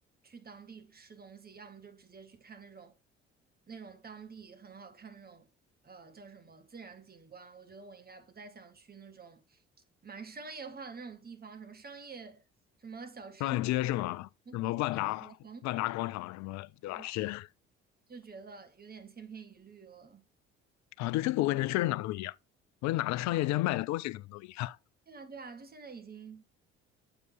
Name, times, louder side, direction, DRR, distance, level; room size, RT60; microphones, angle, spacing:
voice 1, 0.2-2.9 3.7-5.5 5.8-9.6 10.0-12.4 12.8-13.6 14.5-14.7 15.2-15.6 16.9-17.1 18.1-20.2 22.9-23.0 25.1-26.4, right 5 dB, 25° right, 1.6 m, -48 dB
voice 2, 13.4-15.3 15.6-17.5 21.0-22.3 22.8-24.8, left 17 dB, 55° left, 0.5 m, -31 dB
7.6 x 5.0 x 3.4 m
hypercardioid pair, 50°, 34 cm